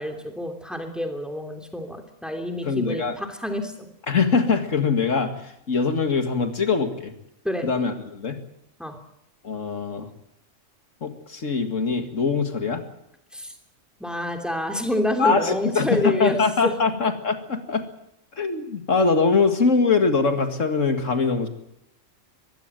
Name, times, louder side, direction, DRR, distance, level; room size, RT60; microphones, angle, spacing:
voice 1, 0.0-3.7 7.4-7.7 8.8-9.0 13.3-13.5 14.0-16.8, left 1 dB, ahead, 4 dB, 3.0 m, -28 dB
voice 2, 2.6-3.2 4.1-7.1 7.6-8.4 9.4-10.1 11.0-12.8 15.2-17.8 18.3-21.5, left 4 dB, 75° left, 7 dB, 2.3 m, -23 dB
23.5 x 16.0 x 9.1 m, 0.79 s
omnidirectional pair, 1.3 m